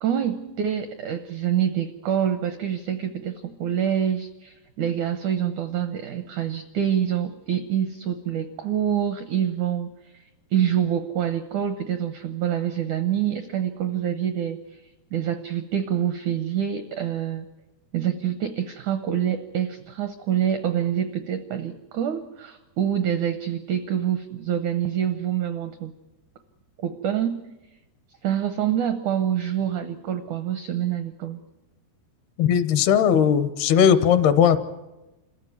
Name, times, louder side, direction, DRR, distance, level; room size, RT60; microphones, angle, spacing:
voice 1, 0.0-9.9 10.5-14.6 15.1-17.5 17.9-25.9 26.8-27.4 28.2-31.4, right 9 dB, 80° right, 9 dB, 1.7 m, -26 dB
voice 2, 32.4-34.6, left 8 dB, 80° left, 12 dB, 2.9 m, -18 dB
27.0 x 15.0 x 9.5 m, 1.0 s
omnidirectional pair, 4.7 m